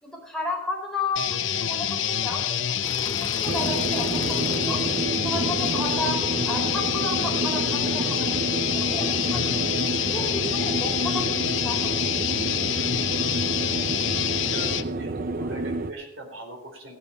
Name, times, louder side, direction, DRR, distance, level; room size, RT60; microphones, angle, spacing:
voice 1, 0.0-3.1 3.4-4.8 5.2-9.5 10.1-11.9, left 2 dB, 5° left, -2 dB, 3.9 m, -33 dB
sound 1, 1.2-14.9, left 10 dB, 70° left, 0.8 m, -27 dB
sound 2, 2.8-10.6, left 2 dB, 20° left, 1.0 m, -42 dB
sound 3, 3.5-15.9, right 2 dB, 45° right, 0.6 m, -29 dB
voice 2, 14.1-17.0, right 2 dB, 90° right, 3 dB, 3.9 m, -41 dB
15.5 x 10.0 x 5.5 m, 0.79 s
head